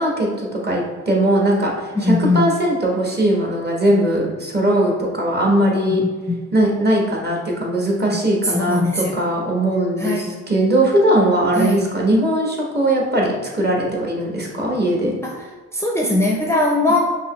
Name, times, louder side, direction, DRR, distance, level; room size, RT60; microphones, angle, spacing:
voice 1, 0.0-6.0 6.5-15.2 16.8-16.9, right 1 dB, 35° right, -1 dB, 1.4 m, -19 dB
voice 2, 1.9-2.5 6.0-6.4 8.4-9.2 10.0-10.4 11.6-11.9 15.2-15.4 15.7-17.0, left 2 dB, 10° left, -1 dB, 0.6 m, -20 dB
5.4 x 3.0 x 3.1 m, 1.4 s
cardioid pair, 90°, 30 cm